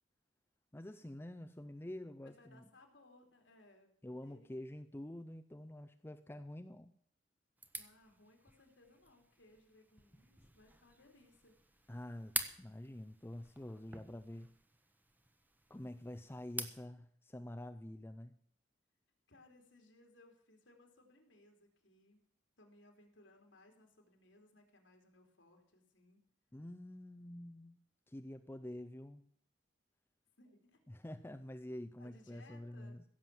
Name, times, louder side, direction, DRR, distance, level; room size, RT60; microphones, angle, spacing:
voice 1, 0.7-2.6 4.0-6.9 11.9-14.5 15.7-18.3 26.5-27.8 28.1-29.3 30.9-33.0, left 1 dB, 10° left, 7 dB, 0.5 m, -47 dB
voice 2, 2.2-4.6 7.7-11.5 11.8-12.0 19.3-22.2 22.6-26.3 30.4-30.8 32.0-33.0, left 2 dB, 90° left, 2 dB, 3.2 m, -64 dB
sound 1, 7.6-16.9, right 3 dB, 10° right, 0.9 m, -48 dB
16.0 x 7.4 x 7.5 m, 0.64 s
head